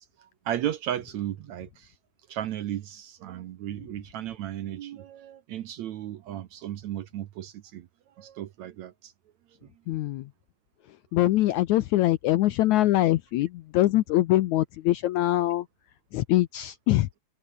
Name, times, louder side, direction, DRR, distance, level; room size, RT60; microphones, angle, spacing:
voice 1, 0.0-1.9 2.3-7.9 8.2-9.1, right 11 dB, 65° right, 2.0 m, -35 dB
voice 2, 9.9-10.3 11.1-15.7 16.1-17.1, left 15 dB, 75° left, 1.8 m, -23 dB
omnidirectional pair, 4.1 m